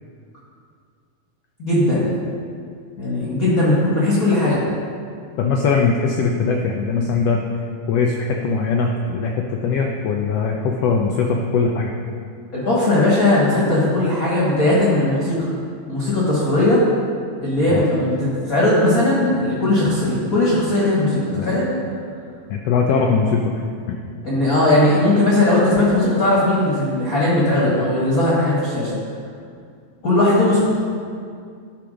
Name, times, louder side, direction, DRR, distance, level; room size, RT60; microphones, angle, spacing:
voice 1, 1.6-2.1 3.0-4.6 12.5-15.5 15.9-16.8 17.4-21.7 24.2-29.0 30.0-30.6, left 1 dB, 35° left, -7 dB, 1.8 m, -18 dB
voice 2, 5.4-7.4 7.9-11.9 17.7-17.8 21.3-21.5 22.5-23.4 23.9-24.0, left 5 dB, 75° left, 1 dB, 1.5 m, -20 dB
12.0 x 5.9 x 5.1 m, 2.2 s
omnidirectional pair, 3.4 m